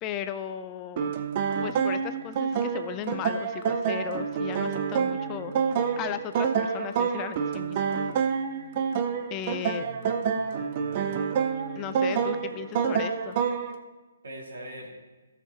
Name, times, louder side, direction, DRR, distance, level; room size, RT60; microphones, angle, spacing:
voice 1, 0.0-1.1 1.6-5.6 6.0-8.0 9.3-9.9 11.8-13.4, left 9 dB, 20° left, 10 dB, 0.4 m, -36 dB
sound 1, 1.0-13.7, right 6 dB, 35° right, 0.7 m, -28 dB
voice 2, 9.8-11.2 14.2-14.9, right 1 dB, 65° right, -2 dB, 2.5 m, -43 dB
14.0 x 6.7 x 4.3 m, 1.2 s
figure-of-eight pair, 140°, 0 cm